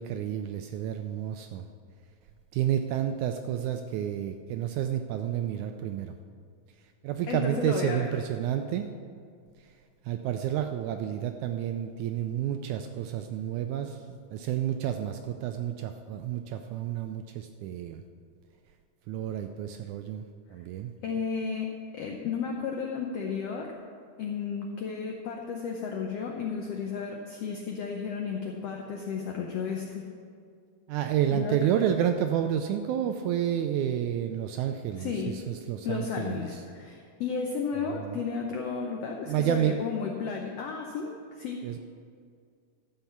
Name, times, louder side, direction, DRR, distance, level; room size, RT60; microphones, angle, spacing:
voice 1, 0.0-1.7 2.5-6.2 7.0-8.9 10.1-18.0 19.1-20.9 30.9-36.5 38.0-38.2 39.3-39.8 41.6-41.8, right 10 dB, 85° right, 6 dB, 1.7 m, -30 dB
voice 2, 7.3-8.1 21.0-23.7 24.2-30.1 31.3-31.6 35.0-35.3 35.8-41.7, left 5 dB, 80° left, 1 dB, 1.4 m, -33 dB
13.5 x 5.8 x 7.1 m, 2.2 s
omnidirectional pair, 3.9 m